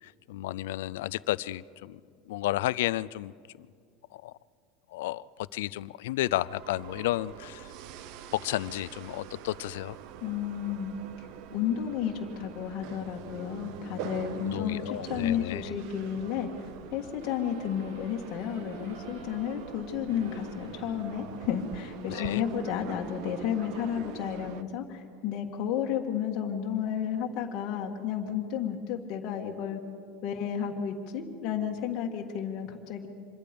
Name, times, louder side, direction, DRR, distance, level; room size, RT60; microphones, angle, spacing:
voice 1, 0.0-2.0 2.3-3.3 3.6-3.7 4.1-4.3 4.9-7.7 8.3-10.0 14.3-15.7 22.1-22.4, left 16 dB, 85° left, 18 dB, 0.4 m, -32 dB
sound 1, 6.3-24.6, right 10 dB, 50° right, 0.7 m, -44 dB
voice 2, 10.2-29.8 30.2-33.1, left 8 dB, 40° left, 0 dB, 1.7 m, -32 dB
sound 2, 17.2-21.9, right 1 dB, 80° right, 4.3 m, -49 dB
25.5 x 21.5 x 5.2 m, 2.2 s
supercardioid pair, 175°, 0 cm